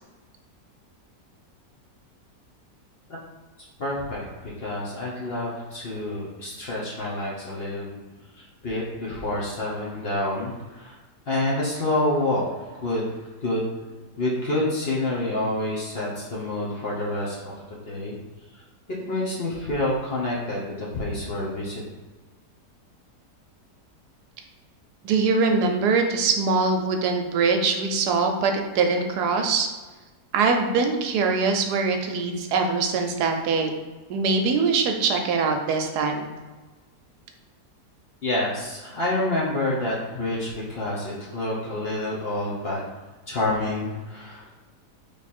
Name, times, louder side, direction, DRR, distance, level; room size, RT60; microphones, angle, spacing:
voice 1, 3.8-8.0 8.3-11.0 11.3-13.1 13.4-13.7 14.2-17.5 17.9-18.2 18.5-18.6 19.1-21.8 38.2-42.8 43.3-44.6, left 1 dB, 50° left, -6 dB, 0.8 m, -28 dB
voice 2, 25.0-29.7 30.3-33.7 34.1-36.3, right 4 dB, 75° right, 4 dB, 1.1 m, -23 dB
3.5 x 3.2 x 4.2 m, 1.3 s
omnidirectional pair, 1.8 m